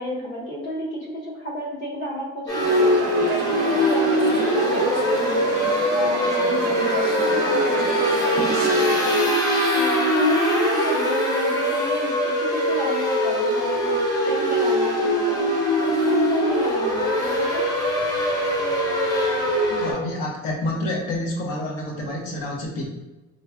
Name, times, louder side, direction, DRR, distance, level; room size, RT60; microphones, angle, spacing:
voice 1, 0.0-3.1 3.4-8.6 9.0-14.0 14.3-15.5 15.8-17.7, equal, 40° left, -5 dB, 0.9 m, -31 dB
sound 1, 2.5-19.9, equal, 10° left, 0.7 m, -22 dB
sound 2, 2.6-9.4, right 3 dB, 35° right, 0.4 m, -30 dB
voice 2, 19.7-22.9, left 1 dB, 80° left, -1 dB, 1.1 m, -28 dB
3.9 x 3.1 x 2.3 m, 1.1 s
cardioid pair, 155°, 31 cm